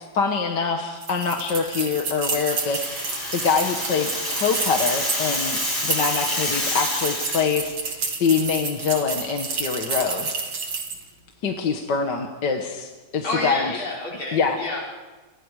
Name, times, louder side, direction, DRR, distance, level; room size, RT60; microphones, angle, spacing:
voice 1, 0.1-10.3 11.4-13.9 14.3-14.6, left 5 dB, 60° left, 3 dB, 2.1 m, -25 dB
sound 1, 1.0-11.1, right 4 dB, 85° right, 3.4 m, -30 dB
Rattle (instrument), 2.3-7.5, left 1 dB, 25° left, 6.6 m, -28 dB
voice 2, 13.2-14.8, left 2 dB, 75° left, -4 dB, 6.8 m, -29 dB
29.5 x 26.0 x 4.9 m, 1.2 s
omnidirectional pair, 2.2 m